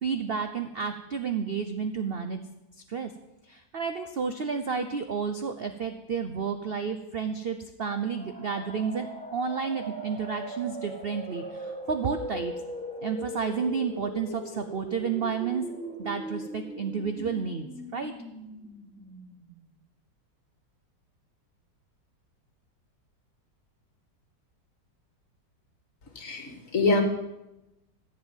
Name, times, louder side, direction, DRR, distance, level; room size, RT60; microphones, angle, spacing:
voice 1, 0.0-2.4 2.9-3.1 3.5-12.5 13.0-15.7 16.0-17.7 17.9-18.1, right 6 dB, 65° right, 8 dB, 0.5 m, -31 dB
sound 1, 8.0-19.6, equal, 5° left, 1.8 m, -40 dB
voice 2, 26.2-27.0, left 3 dB, 45° left, 5 dB, 1.9 m, -25 dB
14.0 x 7.9 x 7.3 m, 0.95 s
omnidirectional pair, 2.0 m